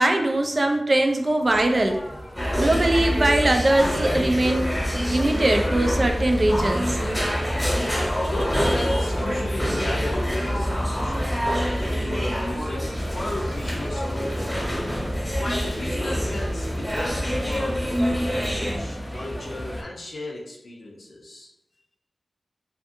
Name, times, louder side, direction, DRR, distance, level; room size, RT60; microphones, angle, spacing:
voice 1, 0.0-2.0 2.5-4.7 5.1-7.0, right 1 dB, 45° right, 4 dB, 0.4 m, -21 dB
sound 1, 1.4-19.8, equal, 15° left, 0.5 m, -38 dB
sound 2, 2.4-18.8, equal, ahead, 1.0 m, -26 dB
voice 2, 8.1-14.7 15.3-21.5, left 1 dB, 85° left, -5 dB, 0.5 m, -35 dB
2.6 x 2.5 x 2.6 m, 0.88 s
cardioid pair, 55°, 0 cm